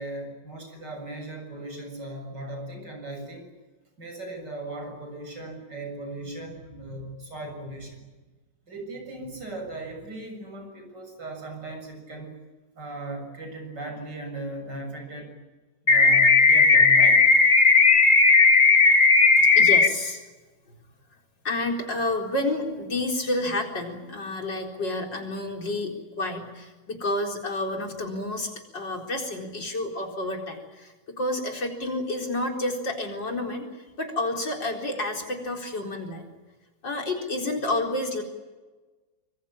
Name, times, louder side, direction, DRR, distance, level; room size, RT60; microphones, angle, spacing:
voice 1, 0.0-3.5 4.0-8.0 8.7-12.3 12.8-15.3 15.8-17.2, right 1 dB, 60° right, 4 dB, 7.8 m, -37 dB
sound 1, 15.9-19.9, left 4 dB, 30° left, 1.3 m, -16 dB
voice 2, 19.6-20.2 21.4-33.7 34.0-36.3 36.8-38.2, left 2 dB, 65° left, 2 dB, 4.9 m, -30 dB
26.0 x 23.5 x 8.8 m, 1.2 s
omnidirectional pair, 2.1 m